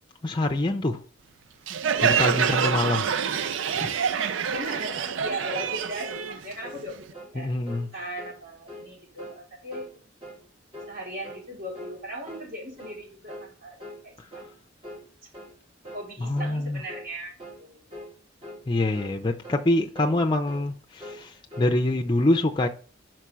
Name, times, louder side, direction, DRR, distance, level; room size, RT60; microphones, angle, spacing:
voice 1, 0.2-1.0 2.0-3.1 3.8-3.9 4.2-4.3 7.4-7.9 14.2-14.3 16.2-16.8 18.7-22.7, left 2 dB, 25° left, 0.5 m, -25 dB
Crowd, 1.7-7.1, right 7 dB, 80° right, 0.4 m, -26 dB
voice 2, 2.3-3.0 4.5-7.1 7.3-9.9 10.9-13.8 14.0-14.6 15.9-17.3 17.6-17.8 20.0-20.2, equal, 50° right, 3.8 m, -38 dB
sound 1, 5.6-5.8 6.1-6.3 6.6-6.9 7.1-7.4 7.7-7.9 8.2-8.4 8.7-8.9 9.2-9.4 9.7-9.9 10.2-10.4 10.7-11.0 11.2-11.5 11.7-12.0 12.3-12.5 12.8-13.0 13.3-13.5 13.8-14.0 14.3-14.5 14.8-15.1 15.3-15.6 15.8-16.1 16.4-16.6 16.9-17.1 17.4-17.6 17.9-18.1 18.4-18.6 18.9-19.2 19.4-19.7 19.9-20.2 20.5-20.7 21.0-21.7, equal, 30° right, 1.5 m, -42 dB
5.7 x 4.5 x 6.2 m
head